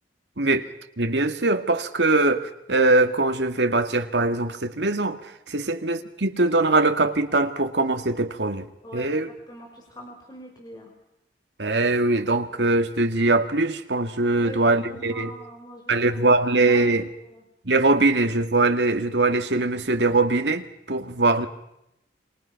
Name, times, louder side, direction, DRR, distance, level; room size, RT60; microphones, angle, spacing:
voice 1, 0.4-0.7 1.0-8.7 8.9-9.3 11.6-15.3 15.9-17.1 17.7-21.5, right 2 dB, 80° right, 2.1 m, -22 dB
voice 2, 8.8-9.1 9.5-10.9 14.4-16.3 16.6-17.4, equal, 25° left, 5.3 m, -43 dB
28.5 x 27.5 x 5.9 m
head